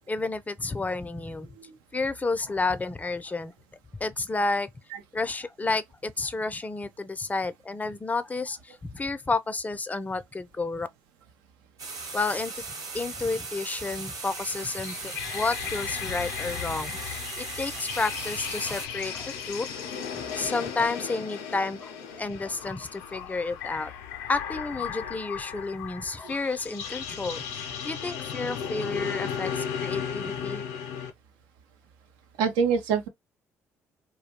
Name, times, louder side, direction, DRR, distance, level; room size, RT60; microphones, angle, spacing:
voice 1, 0.1-1.5 1.9-3.5 4.0-4.7 5.1-10.9 12.1-12.6 12.9-19.6 20.3-23.9 24.3-30.7, left 3 dB, 20° left, 0.4 m, -31 dB
sound 1, 11.8-18.9, right 4 dB, 60° right, 1.0 m, -38 dB
sound 2, 14.2-31.1, left 8 dB, 80° left, 0.4 m, -35 dB
voice 2, 32.4-33.1, right 6 dB, 75° right, 0.5 m, -25 dB
2.3 x 2.1 x 2.8 m
hypercardioid pair, 50°, 7 cm